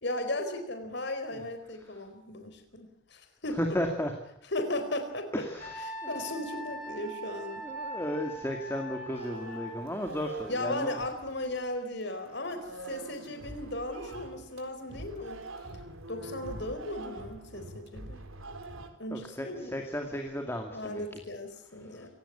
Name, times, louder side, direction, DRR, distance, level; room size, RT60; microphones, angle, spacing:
voice 1, 0.0-3.6 4.5-5.5 5.8-7.7 10.5-15.4 16.1-18.2 19.0-19.8 20.7-22.1, left 1 dB, 55° left, 8 dB, 4.3 m, -36 dB
voice 2, 3.6-4.1 5.3-6.1 6.9-11.0 19.1-21.2 21.9-22.1, equal, 10° left, 3 dB, 2.3 m, -35 dB
Wind instrument woodwind instrument, 5.6-9.8, equal, 40° left, 6.3 m, -41 dB
sound 1, 9.1-11.7 12.0-18.9, right 2 dB, 80° right, 4.0 m, -44 dB
27.0 x 17.0 x 8.6 m, 0.81 s
head